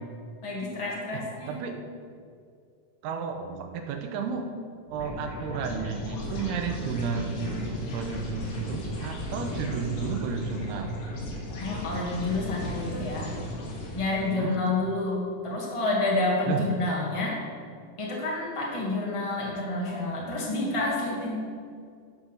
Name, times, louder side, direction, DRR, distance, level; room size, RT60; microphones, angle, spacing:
voice 1, 0.4-1.6 11.6-13.3 13.9-17.4 18.0-21.4, left 2 dB, 25° left, -4 dB, 0.6 m, -29 dB
voice 2, 1.5-1.8 3.0-4.5 4.9-11.0 14.3-14.6 16.5-16.6, right 6 dB, 80° right, 5 dB, 2.7 m, -32 dB
sound 1, 4.9-14.3, left 1 dB, 75° left, 4.4 m, -36 dB
12.0 x 6.0 x 6.6 m, 2.2 s
omnidirectional pair, 4.8 m